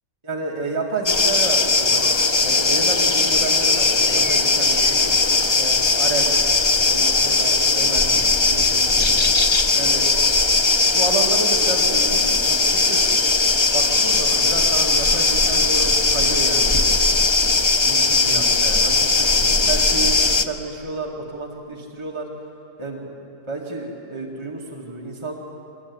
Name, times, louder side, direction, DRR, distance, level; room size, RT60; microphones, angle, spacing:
voice 1, 0.2-6.3 6.8-9.1 9.7-10.2 10.9-13.1 13.7-16.8 17.3-22.3 22.8-25.3, right 3 dB, 15° right, -2 dB, 2.2 m, -31 dB
sound 1, 1.1-20.4, left 3 dB, 35° left, 0.4 m, -18 dB
24.5 x 21.5 x 9.7 m, 2.9 s
omnidirectional pair, 1.8 m